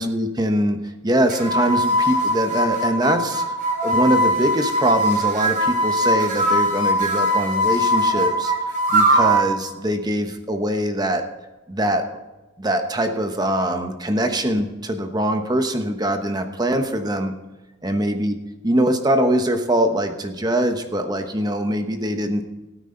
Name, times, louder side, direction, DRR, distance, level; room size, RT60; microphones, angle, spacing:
voice 1, 0.0-3.6 3.8-11.2 11.7-12.1 12.6-17.3 17.8-18.3 18.6-22.4, right 1 dB, 20° right, 6 dB, 1.0 m, -23 dB
sound 1, 1.3-9.5, equal, 40° right, 4.1 m, -20 dB
18.0 x 9.1 x 3.9 m, 1.1 s
head